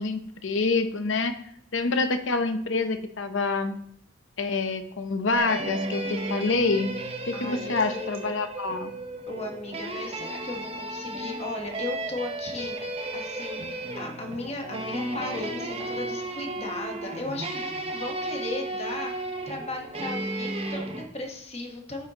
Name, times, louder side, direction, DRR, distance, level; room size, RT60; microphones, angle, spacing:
voice 1, 0.0-1.4 1.7-3.8 4.4-6.9 7.3-8.9, left 3 dB, 65° left, 9 dB, 0.7 m, -27 dB
sound 1, 5.4-21.0, right 2 dB, 30° right, 0.8 m, -34 dB
voice 2, 7.3-8.4 9.3-22.1, left 2 dB, 30° left, 2 dB, 1.2 m, -36 dB
9.5 x 6.8 x 2.9 m, 0.72 s
head